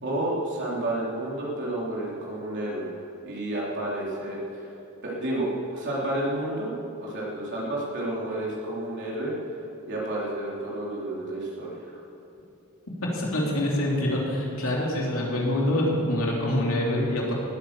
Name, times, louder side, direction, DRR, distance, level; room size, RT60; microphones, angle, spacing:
voice 1, 0.0-2.9 3.2-4.7 5.0-6.7 7.0-9.3 9.9-12.0, right 1 dB, 55° right, -5 dB, 3.8 m, -30 dB
voice 2, 13.0-17.3, left 1 dB, 65° left, -3 dB, 3.1 m, -25 dB
18.0 x 9.2 x 7.0 m, 2.9 s
head